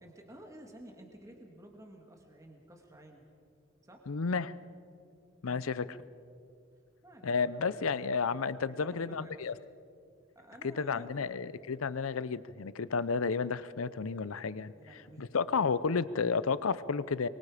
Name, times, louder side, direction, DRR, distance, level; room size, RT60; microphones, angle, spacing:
voice 1, 0.0-3.3 3.8-4.1 5.5-5.7 7.0-7.7 8.7-9.5 10.4-11.6 14.7-15.3, right 1 dB, 15° right, 2 dB, 1.9 m, -53 dB
voice 2, 4.1-4.5 5.4-5.8 7.2-9.5 10.8-14.7 15.2-17.3, left 5 dB, 85° left, 17 dB, 0.6 m, -32 dB
24.5 x 23.0 x 5.0 m, 2.4 s
head